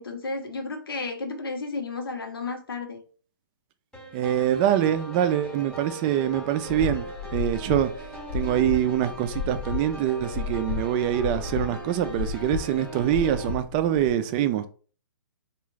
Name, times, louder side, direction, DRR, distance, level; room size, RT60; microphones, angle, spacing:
voice 1, 0.0-3.0, left 3 dB, 85° left, 1.0 m, -33 dB
sound 1, 3.9-13.5, right 1 dB, 5° left, 0.8 m, -40 dB
voice 2, 4.1-7.0 7.3-7.9 8.3-14.7, right 11 dB, 25° right, 0.3 m, -24 dB
sound 2, 6.7-14.1, left 6 dB, 50° left, 0.6 m, -33 dB
3.5 x 2.4 x 3.2 m
hypercardioid pair, 150°, 12 cm